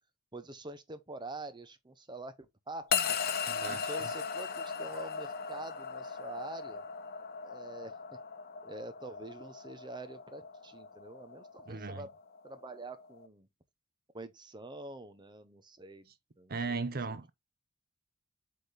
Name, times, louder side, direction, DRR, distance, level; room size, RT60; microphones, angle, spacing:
voice 1, 0.3-3.4 3.6-6.8 7.4-8.2 8.6-12.1 12.4-13.5 14.1-16.8 17.1-17.2, right 2 dB, 20° right, 0.9 m, -46 dB
sound 1, 2.9-13.3, left 6 dB, 45° left, 0.7 m, -38 dB
voice 2, 3.5-3.9 11.7-12.1 16.5-17.3, right 4 dB, 45° right, 0.7 m, -37 dB
8.2 x 3.7 x 4.1 m
head